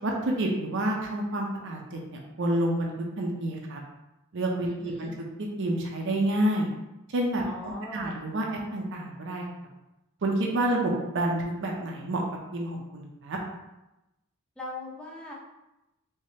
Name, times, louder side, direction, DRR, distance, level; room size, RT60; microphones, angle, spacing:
voice 1, 0.0-3.8 4.3-5.1 5.4-6.7 7.1-8.4 8.7-9.4 10.2-12.2 12.5-13.4, right 1 dB, 55° right, 0 dB, 0.6 m, -29 dB
voice 2, 4.7-5.1 7.4-8.2 14.6-15.3, left 1 dB, 5° left, -4 dB, 0.6 m, -40 dB
3.4 x 3.1 x 2.8 m, 0.94 s
head